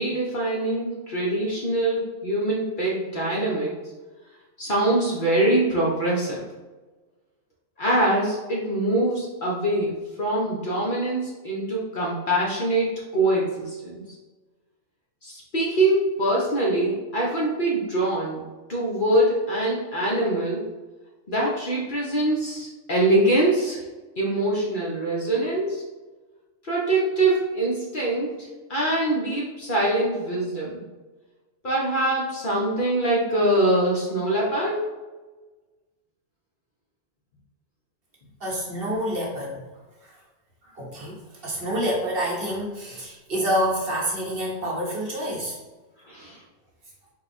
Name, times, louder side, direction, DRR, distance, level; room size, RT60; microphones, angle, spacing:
voice 1, 0.0-3.8 4.6-6.4 7.8-14.0 15.2-18.4 18.7-20.7 21.3-23.8 24.2-25.8 26.6-30.8 31.6-34.9 46.1-46.4, right 1 dB, 45° left, -4 dB, 0.8 m, -24 dB
voice 2, 38.4-39.6 40.7-45.5, equal, 50° right, -3 dB, 1.0 m, -27 dB
4.7 x 2.3 x 4.1 m, 1.2 s
omnidirectional pair, 1.4 m